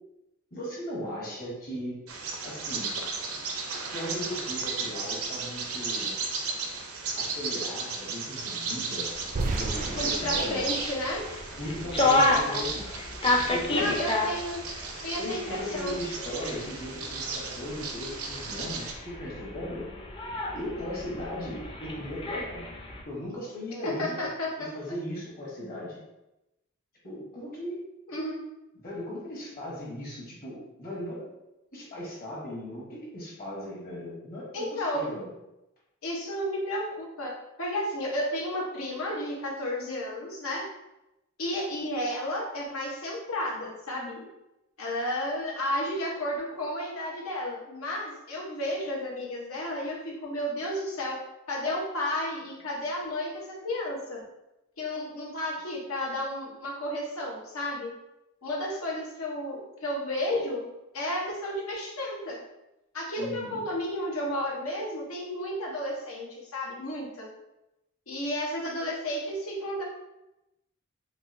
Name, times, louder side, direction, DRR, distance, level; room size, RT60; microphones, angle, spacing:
voice 1, 0.5-2.0 2.4-2.9 3.9-6.2 7.1-9.1 9.6-10.6 11.6-12.9 13.5-14.0 15.2-19.9 20.5-22.7 23.0-24.3 24.6-26.0 27.0-27.8 28.7-31.3 31.7-35.3 63.2-63.6, left 1 dB, 45° left, -4 dB, 1.2 m, -37 dB
Bird vocalization bird call bird song, 2.1-18.9, right 4 dB, 90° right, 0.5 m, -35 dB
sound 1, 9.1-23.0, left 2 dB, 25° left, 0.5 m, -31 dB
sound 2, 9.4-12.3, right 2 dB, 40° right, 0.3 m, -34 dB
voice 2, 9.9-11.2 13.7-14.6 15.0-15.9 23.8-24.7 28.1-28.4 34.5-35.0 36.0-37.3 37.6-40.7 41.4-44.3 44.8-51.2 51.5-54.2 54.8-57.9 58.4-60.6 60.9-62.4 62.9-67.3 68.1-69.8, left 1 dB, 90° left, -2 dB, 0.9 m, -32 dB
4.6 x 2.4 x 2.6 m, 0.93 s
head